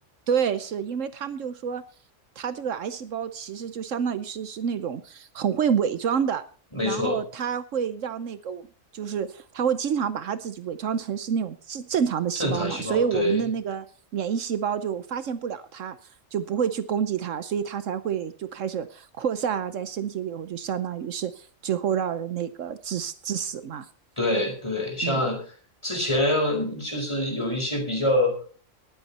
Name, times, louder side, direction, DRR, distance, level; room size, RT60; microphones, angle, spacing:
voice 1, 0.3-1.8 2.4-6.4 6.8-8.7 8.9-13.8 14.1-16.0 16.3-23.9 25.0-25.3, right 7 dB, 75° right, 12 dB, 1.1 m, -28 dB
voice 2, 6.7-7.2 12.4-13.4 24.2-25.4 25.8-28.4, left 1 dB, 20° left, 1 dB, 4.9 m, -25 dB
19.5 x 8.3 x 4.2 m, 0.41 s
omnidirectional pair, 1.4 m